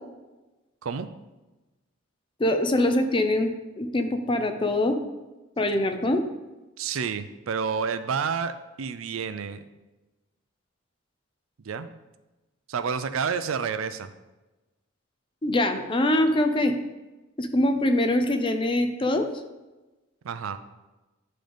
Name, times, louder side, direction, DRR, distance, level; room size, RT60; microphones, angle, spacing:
voice 1, 2.4-5.0 5.6-6.2 15.4-16.7 17.4-19.3, left 1 dB, 25° left, 6 dB, 0.5 m, -23 dB
voice 2, 6.8-9.6 11.6-11.9 12.7-14.1 20.2-20.6, right 6 dB, 90° right, 11 dB, 0.4 m, -29 dB
10.5 x 3.9 x 3.4 m, 1.1 s
head